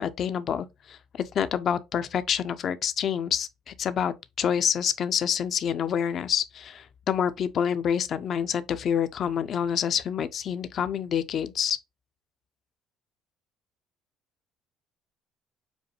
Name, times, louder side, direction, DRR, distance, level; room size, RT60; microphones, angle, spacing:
voice 1, 0.0-11.8, left 8 dB, 50° left, 0.4 m, -27 dB
5.1 x 2.2 x 3.0 m
supercardioid pair, 85°, 0 cm